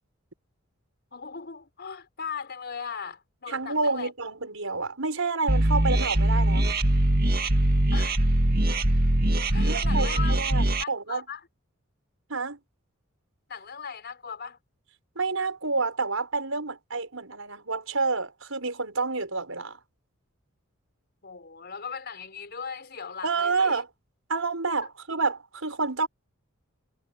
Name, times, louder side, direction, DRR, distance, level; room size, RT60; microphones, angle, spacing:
voice 1, 1.1-4.1 7.9-8.2 9.5-11.5 13.5-14.6 21.2-23.8, left 6 dB, 50° left, 4.8 m, -38 dB
voice 2, 3.5-6.7 9.7-11.2 12.3-12.6 15.2-19.8 23.2-23.9 24.3-26.1, right 4 dB, 80° right, 6.0 m, -29 dB
sound 1, 5.5-10.8, right 1 dB, 45° right, 2.1 m, -22 dB
head